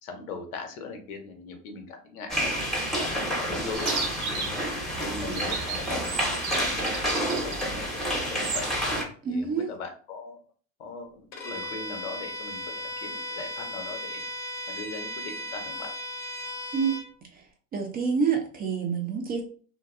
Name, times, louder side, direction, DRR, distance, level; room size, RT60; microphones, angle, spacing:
voice 1, 0.0-2.5 3.0-3.9 4.3-4.7 5.0-8.6 9.3-10.4 10.8-12.6 13.0-14.2 14.7-15.9, left 4 dB, 75° left, 5 dB, 0.8 m, -39 dB
sound 1, 2.3-9.0, equal, ahead, 0.7 m, -29 dB
Chirp tweet, 3.7-8.9, right 5 dB, 90° right, 0.7 m, -35 dB
voice 2, 9.2-9.7 16.7-17.0 17.7-19.4, right 6 dB, 25° right, 2 dB, 0.3 m, -27 dB
Bowed string instrument, 11.3-17.1, left 1 dB, 40° left, 0.7 m, -36 dB
2.6 x 2.2 x 2.4 m, 0.42 s
hypercardioid pair, 85°, 43 cm